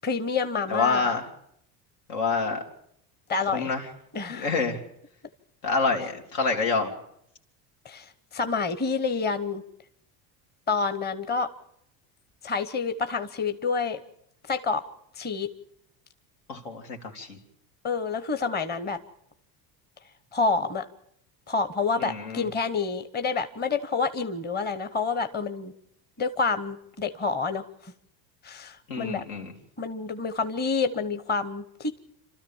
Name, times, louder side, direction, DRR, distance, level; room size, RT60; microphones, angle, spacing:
voice 1, 0.0-1.1 3.3-3.7 4.1-4.5 7.8-9.6 10.7-11.5 12.4-14.0 14.5-14.8 15.2-15.5 17.8-19.0 20.3-20.9 21.5-25.7 26.2-27.9 28.4-29.2 29.8-32.0, left 4 dB, 20° left, 10 dB, 1.0 m, -28 dB
voice 2, 0.7-1.2 2.1-2.6 3.5-3.8 4.3-4.8 5.6-6.9 16.5-17.4 22.0-22.5 28.9-29.5, left 4 dB, 80° left, 2 dB, 3.1 m, -27 dB
28.0 x 13.0 x 7.2 m, 0.75 s
supercardioid pair, 100°, 48 cm